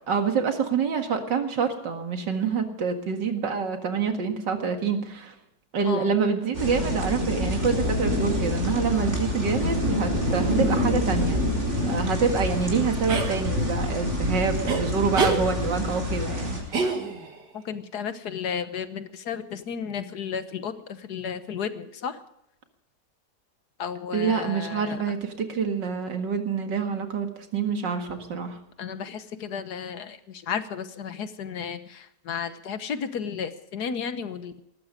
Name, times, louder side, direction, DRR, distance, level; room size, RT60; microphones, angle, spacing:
voice 1, 0.1-5.3 5.7-11.4 11.8-16.6 24.1-28.6, right 6 dB, 85° right, 5 dB, 2.5 m, -26 dB
sound 1, 6.5-16.6, left 1 dB, 40° right, 4.8 m, -27 dB
sound 2, 13.1-13.3 14.7-14.8 15.1-15.4 16.7-17.4, right 4 dB, 70° right, 2.5 m, -25 dB
voice 2, 17.6-22.2 23.8-25.0 28.8-34.6, left 7 dB, 65° left, 11 dB, 1.6 m, -33 dB
19.0 x 14.5 x 5.0 m, 0.78 s
omnidirectional pair, 1.9 m